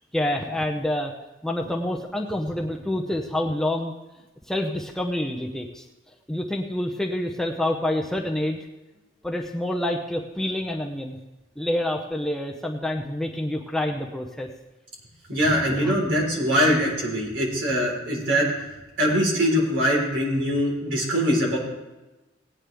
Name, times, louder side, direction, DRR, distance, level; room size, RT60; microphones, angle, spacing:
voice 1, 0.1-1.1 1.4-3.9 4.5-5.8 6.3-8.7 9.2-11.2 11.6-14.5 15.5-16.0 19.1-19.2, left 1 dB, 5° left, 1 dB, 0.7 m, -27 dB
voice 2, 15.3-18.5 19.0-21.6, equal, 65° right, -1 dB, 4.0 m, -22 dB
18.0 x 9.3 x 3.4 m, 1.1 s
head